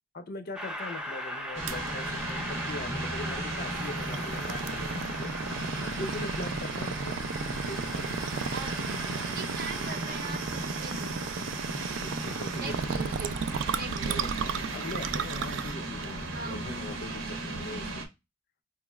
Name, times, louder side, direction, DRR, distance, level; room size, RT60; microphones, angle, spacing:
voice 1, 0.1-5.3 5.8-7.2 7.6-8.2 12.0-13.0 14.0-14.3 14.7-17.9, left 2 dB, 50° left, 8 dB, 0.5 m, -41 dB
Train, 0.6-13.9, equal, 5° right, 0.5 m, -40 dB
sound 1, 1.5-18.0, right 2 dB, 90° right, 1.0 m, -36 dB
sound 2, 1.7-17.9, right 6 dB, 65° right, 0.4 m, -36 dB
voice 2, 9.2-11.2 12.6-13.3 13.7-14.5 16.3-16.7, right 4 dB, 50° right, 7 dB, 0.7 m, -41 dB
4.7 x 3.0 x 2.2 m, 0.23 s
head